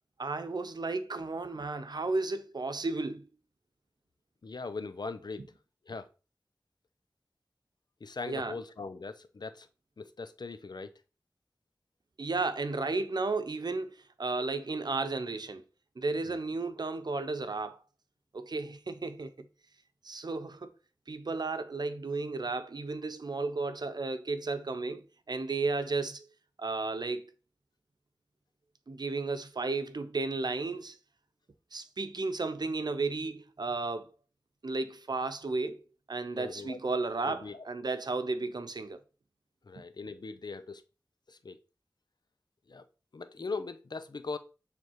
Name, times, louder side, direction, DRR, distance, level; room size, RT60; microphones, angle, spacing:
voice 1, 0.2-3.3 8.3-8.5 12.2-15.6 16.0-17.8 18.3-19.5 20.0-20.7 21.1-26.3 26.6-27.3 28.9-31.0 31.7-34.1 34.6-35.8 36.1-39.0 39.8-39.9, right 3 dB, 75° right, 0.8 m, -33 dB
voice 2, 4.4-5.4 5.9-6.1 8.0-9.7 10.0-10.9 16.3-16.4 36.4-36.8 37.3-37.6 39.6-40.8 41.3-41.6 42.7-42.9 43.1-44.4, left 4 dB, 80° left, 0.6 m, -40 dB
9.3 x 3.5 x 4.7 m
wide cardioid pair, 45°, 7 cm